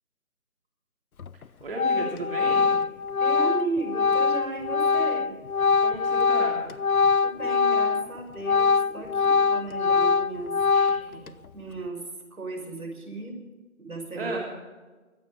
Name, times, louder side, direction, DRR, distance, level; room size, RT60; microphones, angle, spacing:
Organ, 1.2-1.4 1.8-8.1 8.4-11.3, left 5 dB, 80° left, 0.9 m, -23 dB
voice 1, 1.6-2.7 5.8-6.8 10.7-11.3 14.2-14.4, right 2 dB, 40° right, -1 dB, 3.0 m, -34 dB
voice 2, 3.2-5.3 7.2-10.5 11.5-12.0 12.3-13.4 13.8-14.4, right 3 dB, 80° right, 4 dB, 5.6 m, -35 dB
24.0 x 9.7 x 4.9 m, 1.3 s
figure-of-eight pair, 170°, 42 cm